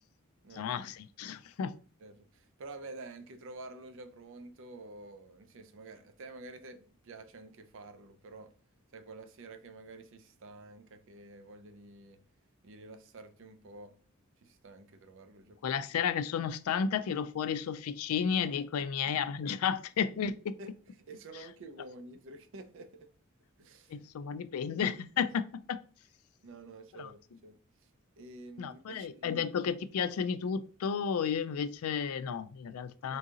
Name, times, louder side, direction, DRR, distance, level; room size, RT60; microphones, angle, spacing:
voice 1, 0.5-1.8 15.6-20.6 23.9-25.8 26.9-27.1 28.6-33.2, left 7 dB, 80° left, 0.4 m, -32 dB
voice 2, 2.0-8.5 8.9-12.2 12.6-13.9 14.4-15.8 19.0-19.2 20.6-20.7 21.0-23.1 23.6-24.1 25.3-25.4 26.4-27.6 28.2-29.5 33.1-33.2, right 2 dB, 60° right, 0.5 m, -49 dB
3.8 x 2.7 x 3.7 m
head